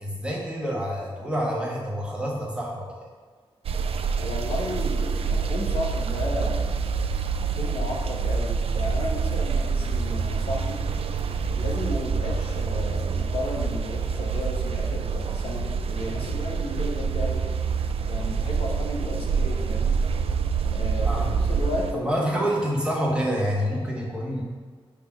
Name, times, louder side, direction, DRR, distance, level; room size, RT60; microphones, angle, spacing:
voice 1, 0.0-3.1 21.0-21.4 21.9-24.4, equal, 10° right, -4 dB, 1.4 m, -27 dB
sound 1, 3.6-21.9, right 5 dB, 80° right, 0.4 m, -26 dB
voice 2, 4.2-6.7 7.5-10.8 11.5-17.4 18.1-20.0 20.7-22.5, left 1 dB, 75° left, -2 dB, 1.2 m, -33 dB
5.8 x 3.7 x 5.9 m, 1.5 s
wide cardioid pair, 115°, 10 cm